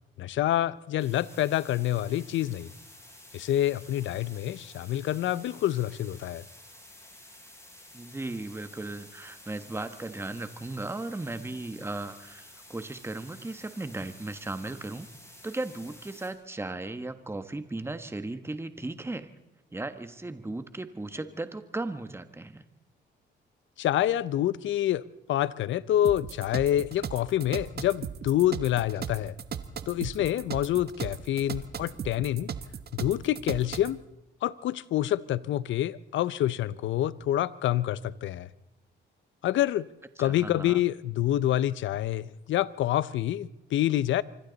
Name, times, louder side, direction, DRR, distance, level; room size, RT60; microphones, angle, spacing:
voice 1, 0.2-2.7 3.3-6.4 23.8-25.0 25.3-29.3 29.9-32.5 33.0-34.0 34.4-38.5 39.4-39.9 40.2-44.2, left 12 dB, 75° left, 0.7 m, -27 dB
sound 1, 1.0-16.3, left 1 dB, 15° left, 7.1 m, -51 dB
voice 2, 7.9-15.1 15.4-19.3 19.7-22.6 40.2-40.8, right 2 dB, 10° right, 1.4 m, -36 dB
sound 2, 26.0-34.0, right 7 dB, 55° right, 1.2 m, -37 dB
26.5 x 24.0 x 4.0 m
cardioid pair, 90°, 20 cm